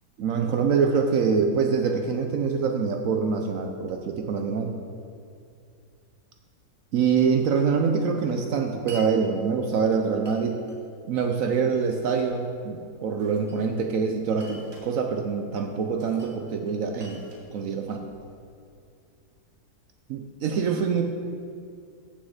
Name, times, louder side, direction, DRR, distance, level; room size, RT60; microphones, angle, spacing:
voice 1, 0.2-4.8 6.9-10.6 11.1-17.2 17.5-18.1 20.1-21.0, right 5 dB, 65° right, 4 dB, 0.9 m, -25 dB
Glass, 8.9-9.1 10.2-10.8 11.6-12.4 13.2-13.9 14.3-14.9 16.0-16.4 16.7-18.3, equal, 15° right, 1.3 m, -48 dB
6.5 x 6.4 x 7.2 m, 2.4 s
omnidirectional pair, 1.8 m